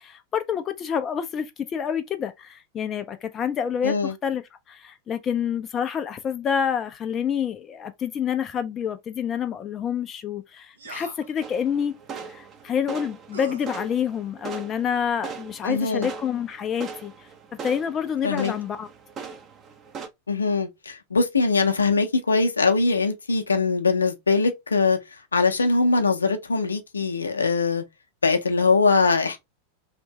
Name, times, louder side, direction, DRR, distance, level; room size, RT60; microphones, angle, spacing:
voice 1, 0.0-4.4 4.7-11.9 12.2-17.3 17.6-18.9, left 8 dB, 25° left, 0.3 m, -28 dB
voice 2, 3.8-4.1 15.6-16.1 18.2-18.5 20.3-25.0 25.3-27.8 28.2-29.4, left 4 dB, 75° left, 0.6 m, -22 dB
sound 1, 10.8-11.3 13.3-13.7, right 4 dB, 70° right, 0.6 m, -40 dB
sound 2, 11.4-20.1, right 6 dB, 30° right, 0.6 m, -40 dB
2.8 x 2.5 x 3.2 m
figure-of-eight pair, 90°, 0 cm